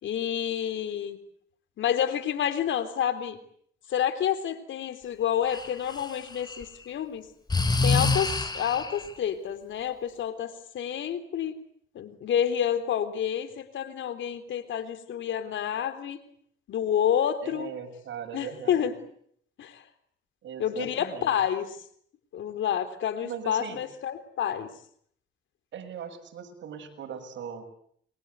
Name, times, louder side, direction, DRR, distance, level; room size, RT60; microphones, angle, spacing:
voice 1, 0.0-1.2 1.8-3.4 3.9-7.3 7.8-11.5 11.9-16.2 16.7-17.7 18.3-18.9 19.6-19.8 20.6-21.8 22.3-24.7, left 9 dB, 75° left, 11 dB, 3.6 m, -29 dB
Breathing, 5.5-6.6 7.5-9.1, left 3 dB, 20° left, 4.1 m, -26 dB
voice 2, 17.4-18.9 20.4-21.3 23.2-23.8 25.7-27.6, right 7 dB, 70° right, 5 dB, 7.0 m, -39 dB
28.0 x 23.0 x 8.4 m, 0.65 s
cardioid pair, 90°, 20 cm